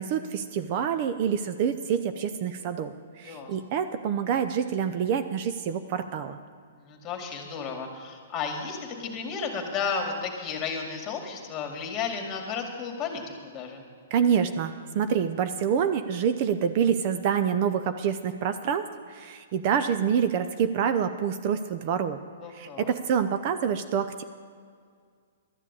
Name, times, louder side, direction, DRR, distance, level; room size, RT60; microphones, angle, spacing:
voice 1, 0.0-6.4 14.1-22.2 22.5-24.2, right 7 dB, 40° right, 9 dB, 0.6 m, -27 dB
voice 2, 3.2-3.5 6.8-13.8 22.4-22.9, left 5 dB, 25° left, 3 dB, 2.2 m, -33 dB
12.5 x 7.5 x 8.3 m, 2.1 s
hypercardioid pair, 145°, 0 cm